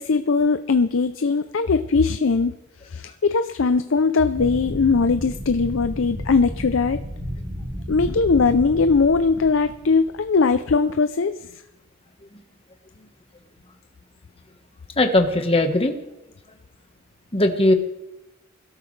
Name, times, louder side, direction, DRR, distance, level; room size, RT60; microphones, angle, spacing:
voice 1, 0.0-2.5 2.8-7.0 7.9-11.5, left 4 dB, 70° left, 11 dB, 0.5 m, -20 dB
sound 1, 4.3-10.5, equal, 50° right, 4.3 m, -33 dB
voice 2, 15.0-16.0 17.3-17.7, left 1 dB, 30° left, 5 dB, 1.4 m, -19 dB
22.0 x 12.5 x 3.3 m, 0.93 s
head